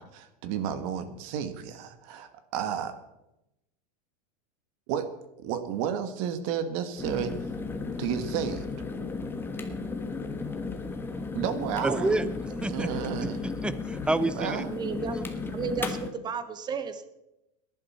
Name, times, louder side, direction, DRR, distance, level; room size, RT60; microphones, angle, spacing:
voice 1, 0.0-3.0 4.9-5.1 5.4-7.3 8.0-8.7 11.3-12.2 12.7-13.4 14.4-14.7, right 8 dB, 55° right, 10 dB, 1.6 m, -32 dB
sound 1, 7.0-16.1, left 4 dB, 10° left, 1.3 m, -34 dB
voice 2, 11.8-12.9 13.2-14.6 15.1-15.3, right 2 dB, 5° right, 15 dB, 0.6 m, -29 dB
voice 3, 14.7-15.2 15.5-17.1, right 6 dB, 20° right, 11 dB, 1.2 m, -33 dB
17.5 x 11.0 x 4.3 m, 0.90 s
supercardioid pair, 140°, 21 cm